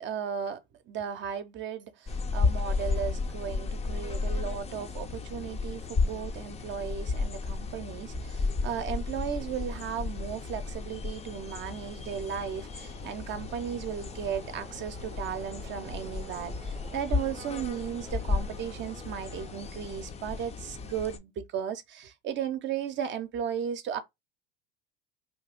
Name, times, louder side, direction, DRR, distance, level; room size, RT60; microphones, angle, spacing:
voice 1, 0.0-24.0, right 8 dB, 40° right, 0.7 m, -35 dB
sound 1, 2.1-21.2, left 4 dB, 20° left, 0.5 m, -34 dB
sound 2, 3.1-3.2 3.5-3.6 4.4-4.6 4.9-5.0 5.6-5.9 6.4-20.0, right 7 dB, 90° right, 0.6 m, -52 dB
2.8 x 2.4 x 3.5 m
hypercardioid pair, 80°, 29 cm